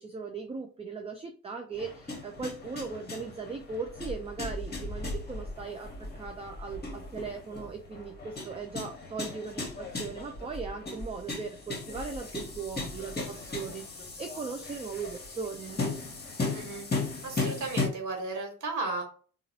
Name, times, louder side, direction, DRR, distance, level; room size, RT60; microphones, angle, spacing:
voice 1, 0.0-15.8, right 5 dB, 15° right, 4 dB, 0.5 m, -38 dB
sound 1, 1.7-17.9, left 3 dB, 20° left, 1.3 m, -37 dB
voice 2, 16.5-16.9 17.2-19.0, right 3 dB, 40° right, 1 dB, 1.7 m, -34 dB
3.9 x 2.5 x 4.1 m, 0.39 s
figure-of-eight pair, 45°, 46 cm